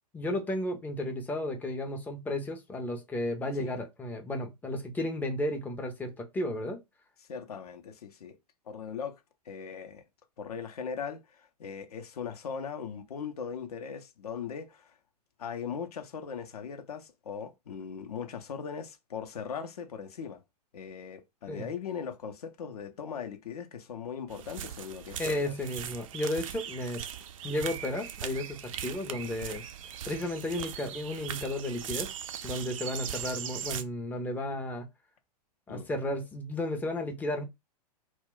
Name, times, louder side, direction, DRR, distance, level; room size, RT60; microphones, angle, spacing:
voice 1, 0.1-6.8 21.5-21.7 25.2-27.0 27.4-29.6 30.0-32.1 32.4-34.9 35.7-37.4, left 1 dB, 10° left, 0.4 m, -33 dB
voice 2, 7.3-8.4 8.7-10.0 10.4-15.0 15.4-20.4 20.7-25.5 35.7-35.9, left 6 dB, 65° left, 0.6 m, -39 dB
sound 1, 24.3-33.8, right 9 dB, 55° right, 0.4 m, -39 dB
2.1 x 2.1 x 3.6 m
figure-of-eight pair, 105°, 21 cm